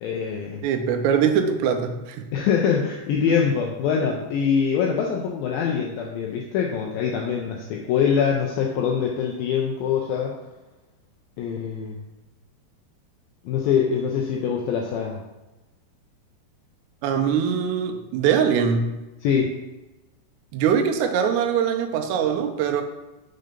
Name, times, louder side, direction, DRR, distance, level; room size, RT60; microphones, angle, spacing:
voice 1, 0.0-0.6 2.3-10.3 11.4-12.0 13.5-15.2 19.2-19.5, left 7 dB, 85° left, -1 dB, 2.1 m, -24 dB
voice 2, 0.6-2.2 17.0-19.0 20.5-22.8, right 7 dB, 85° right, 6 dB, 2.8 m, -22 dB
6.7 x 3.8 x 5.1 m, 1.0 s
omnidirectional pair, 4.8 m